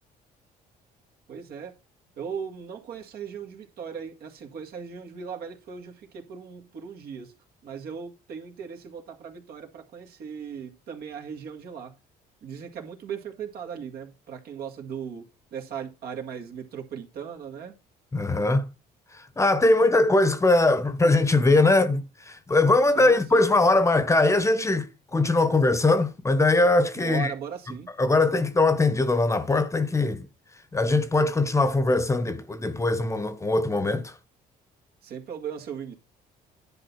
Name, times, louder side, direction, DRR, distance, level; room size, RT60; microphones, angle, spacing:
voice 1, 1.3-1.8 2.2-7.3 7.6-11.9 12.4-15.3 15.5-17.7 22.9-23.4 26.9-27.9 35.0-35.9, right 7 dB, 65° right, 2.0 m, -38 dB
voice 2, 18.1-18.6 19.4-27.3 28.0-30.3 30.7-34.1, left 2 dB, 15° left, 1.0 m, -21 dB
10.5 x 4.1 x 5.9 m
cardioid pair, 110°, 17 cm